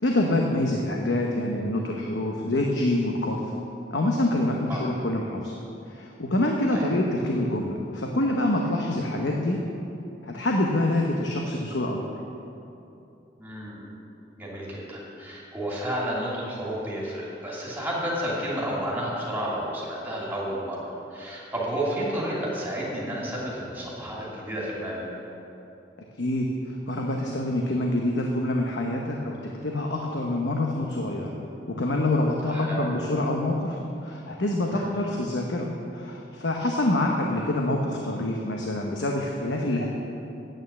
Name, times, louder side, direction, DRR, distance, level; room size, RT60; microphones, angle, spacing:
voice 1, 0.0-3.4 3.9-5.5 5.9-9.6 10.2-12.0 26.2-29.4 29.6-31.3 31.7-35.7 35.9-39.9, left 1 dB, 80° left, 0 dB, 0.9 m, -26 dB
voice 2, 13.4-13.9 14.4-25.1 32.4-32.9 34.7-34.9, equal, 10° right, -6 dB, 2.8 m, -31 dB
9.0 x 9.0 x 7.1 m, 2.8 s
head